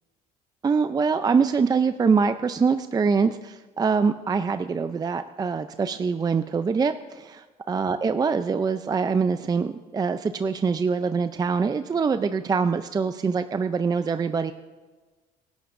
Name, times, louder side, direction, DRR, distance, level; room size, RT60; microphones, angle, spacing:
voice 1, 0.6-14.5, right 5 dB, 25° right, 10 dB, 0.4 m, -24 dB
27.0 x 11.5 x 2.6 m, 1.3 s
cardioid pair, 110°, 17 cm